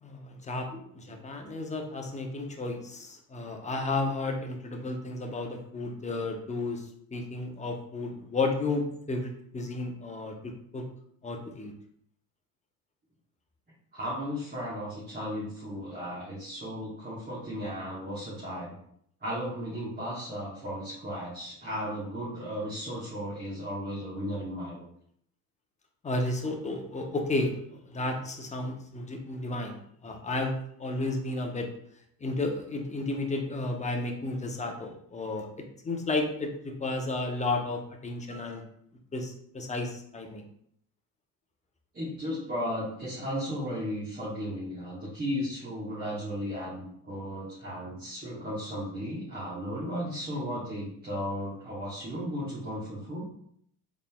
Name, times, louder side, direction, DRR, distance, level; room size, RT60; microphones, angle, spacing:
voice 1, 0.0-0.7 1.1-6.9 7.1-10.8 11.2-11.7 26.0-27.6 27.9-30.5 30.8-31.7 32.2-35.5 35.8-38.6 39.1-40.4, left 2 dB, 15° left, 3 dB, 0.7 m, -32 dB
voice 2, 0.7-1.2 1.5-1.6 13.9-18.7 19.2-24.8 41.9-53.3, equal, 20° right, -8 dB, 1.3 m, -35 dB
3.9 x 3.6 x 2.3 m, 0.67 s
supercardioid pair, 80°, 42 cm